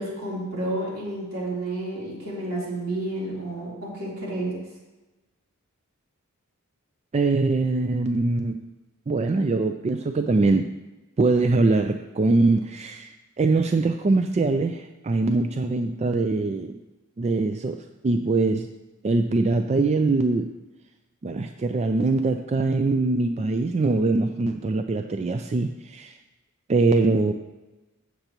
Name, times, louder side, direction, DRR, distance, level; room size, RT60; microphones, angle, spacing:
voice 1, 0.0-4.6, right 1 dB, 70° right, -6 dB, 3.5 m, -30 dB
voice 2, 7.1-8.7 9.1-10.6 11.2-16.8 17.2-17.8 18.0-18.7 19.0-20.5 21.2-26.1 26.7-27.3, right 3 dB, 30° right, 7 dB, 0.3 m, -23 dB
15.0 x 6.6 x 3.0 m, 1.1 s
head